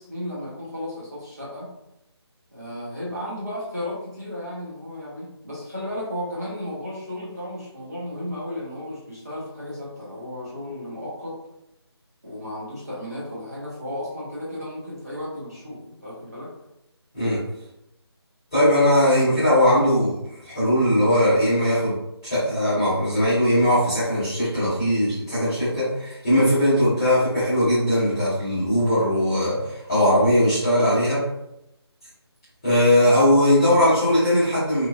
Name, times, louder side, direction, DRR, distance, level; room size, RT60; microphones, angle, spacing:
voice 1, 0.0-1.7 2.5-11.3 12.2-16.5, left 1 dB, 35° right, -7 dB, 0.7 m, -34 dB
voice 2, 18.5-20.2 20.4-21.9 22.2-31.2 32.6-34.9, equal, 10° left, -20 dB, 0.8 m, -19 dB
3.0 x 2.2 x 2.2 m, 0.85 s
figure-of-eight pair, 180°, 14 cm